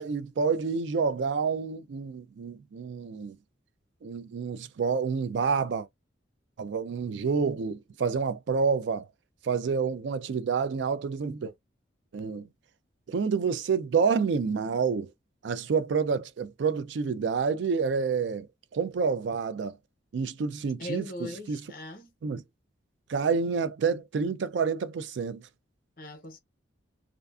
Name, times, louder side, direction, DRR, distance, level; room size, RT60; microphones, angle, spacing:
voice 1, 0.0-3.3 4.0-5.9 6.6-9.1 9.4-11.5 12.1-12.4 13.1-15.1 15.4-18.5 18.7-19.8 20.1-21.6 22.2-22.4 23.1-25.4, right 5 dB, 65° right, 0.3 m, -28 dB
voice 2, 20.8-22.1 26.0-26.4, left 1 dB, 45° left, 0.8 m, -39 dB
2.5 x 2.3 x 2.4 m
head